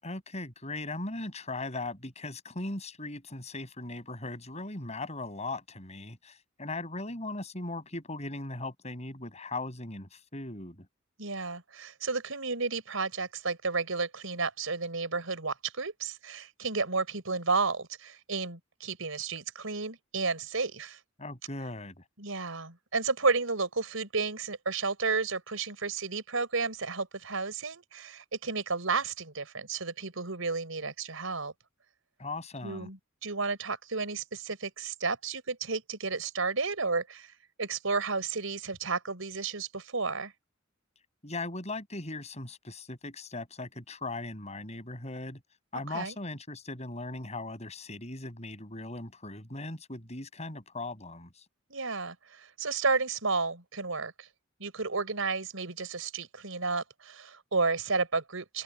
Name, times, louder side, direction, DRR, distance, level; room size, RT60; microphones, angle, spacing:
voice 1, 0.0-10.9 21.2-22.0 32.2-32.9 41.2-45.4 45.7-51.4, left 2 dB, 35° left, 6.5 m, -38 dB
voice 2, 11.2-21.0 22.2-31.5 32.6-37.3 37.6-40.3 45.9-46.1 51.7-54.3 54.6-58.6, right 4 dB, 85° right, 4.5 m, -32 dB
head